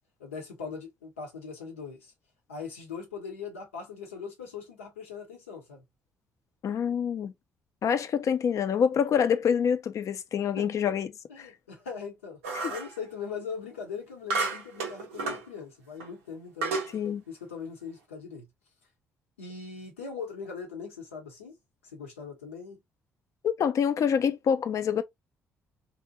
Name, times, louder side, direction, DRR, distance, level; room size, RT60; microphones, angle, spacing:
voice 1, 0.2-2.1 2.5-5.8 10.6-10.7 11.3-16.8 17.3-18.5 19.4-21.6 21.9-22.8, left 5 dB, 90° left, 0.7 m, -40 dB
voice 2, 6.6-7.3 7.8-11.1 11.4-11.5 12.6-12.7 16.9-17.2 23.4-25.0, left 7 dB, 50° left, 0.4 m, -26 dB
sound 1, 12.4-13.0 14.3-15.5 16.0-16.1 16.6-16.9, right 3 dB, 80° right, 0.5 m, -31 dB
2.6 x 2.1 x 2.7 m
hypercardioid pair, 45°, 7 cm